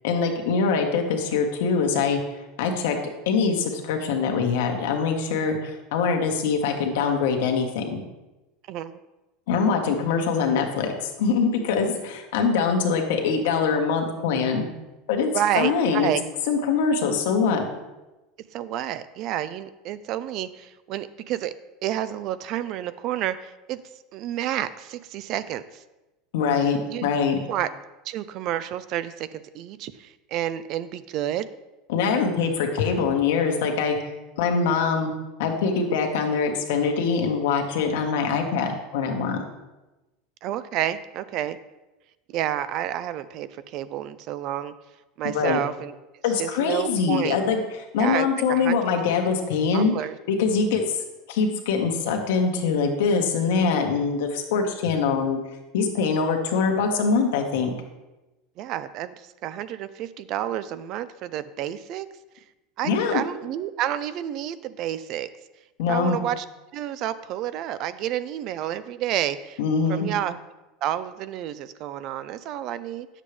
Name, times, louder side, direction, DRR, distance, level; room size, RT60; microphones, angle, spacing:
voice 1, 0.0-2.2 2.6-3.0 3.2-8.0 9.5-14.7 15.1-16.1 16.5-17.6 26.3-27.4 31.9-34.1 34.4-35.1 35.4-39.4 45.2-45.6 46.2-47.6 47.9-49.9 50.3-51.0 51.3-55.4 55.7-57.7 62.8-63.2 65.8-66.2 69.6-70.1, left 5 dB, 80° left, 3 dB, 1.4 m, -23 dB
voice 2, 8.7-9.0 15.3-16.2 18.5-21.5 21.8-23.8 24.1-25.8 26.9-27.1 27.5-27.7 28.1-31.5 40.4-41.6 42.3-44.7 45.2-46.0 46.4-47.4 48.0-48.8 49.7-50.2 58.6-59.1 59.4-62.1 62.8-65.3 65.9-66.4 66.7-69.6 69.9-70.4 70.8-73.1, right 11 dB, 55° right, 15 dB, 0.4 m, -29 dB
9.3 x 7.4 x 3.3 m, 1.1 s
supercardioid pair, 115°, 0 cm